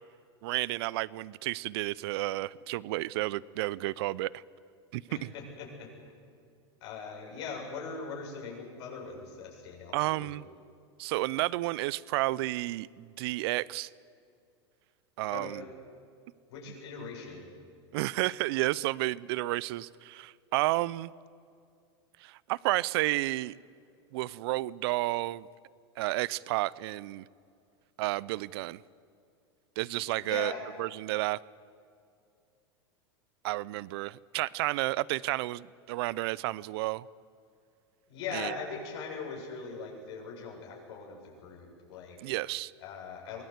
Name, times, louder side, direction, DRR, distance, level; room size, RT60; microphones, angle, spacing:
voice 1, 0.4-4.4 4.9-5.3 9.9-10.4 11.0-13.9 15.2-15.6 17.9-21.1 22.2-23.6 24.1-25.5 26.0-27.2 28.0-28.8 29.8-30.5 30.8-31.4 33.4-37.1 38.3-38.5 42.2-42.7, right 18 dB, 65° right, 22 dB, 0.6 m, -31 dB
voice 2, 5.1-5.9 6.8-10.3 15.3-15.7 16.5-17.5 30.2-30.6 38.1-42.2 42.8-43.4, left 5 dB, 70° left, -1 dB, 7.7 m, -41 dB
23.5 x 19.0 x 8.2 m, 2.4 s
hypercardioid pair, 115°, 14 cm